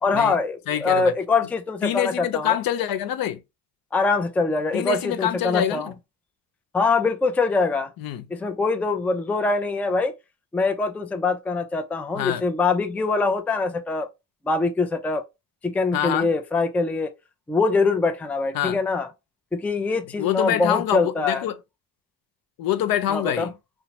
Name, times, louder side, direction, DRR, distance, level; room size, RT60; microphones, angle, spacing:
voice 1, 0.0-2.6 3.9-5.9 6.7-7.9 8.3-10.1 10.5-14.1 14.5-15.2 15.6-17.1 17.5-19.1 19.5-21.5 23.1-23.5, left 3 dB, 5° left, 0.3 m, -23 dB
voice 2, 0.7-1.0 1.8-3.4 4.7-5.8 8.0-8.3 12.2-12.4 15.9-16.3 18.5-18.8 20.2-21.6 22.6-23.5, left 11 dB, 60° left, 0.5 m, -25 dB
2.7 x 2.1 x 2.9 m
supercardioid pair, 65°, 41 cm